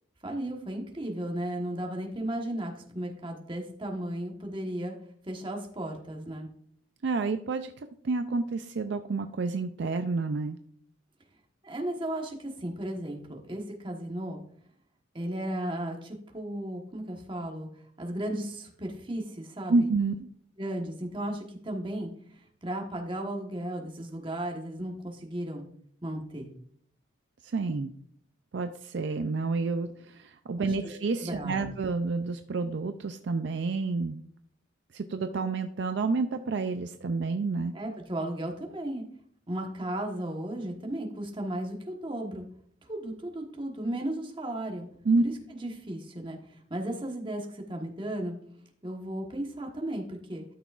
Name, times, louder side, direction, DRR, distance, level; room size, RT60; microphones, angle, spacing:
voice 1, 0.2-4.9 5.2-6.5 11.6-14.4 15.1-17.7 18.0-19.8 20.6-22.1 22.6-25.6 26.0-26.5 30.6-30.9 31.2-31.7 37.7-39.0 39.5-42.4 42.9-44.9 45.2-45.3 45.6-48.3 48.8-50.4, right 1 dB, 25° right, 1 dB, 1.2 m, -35 dB
voice 2, 7.0-7.7 8.0-10.6 19.7-20.3 27.4-27.9 28.5-34.2 34.9-37.7 45.1-45.2, right 3 dB, 55° right, 8 dB, 0.4 m, -29 dB
13.0 x 6.0 x 2.4 m, 0.65 s
head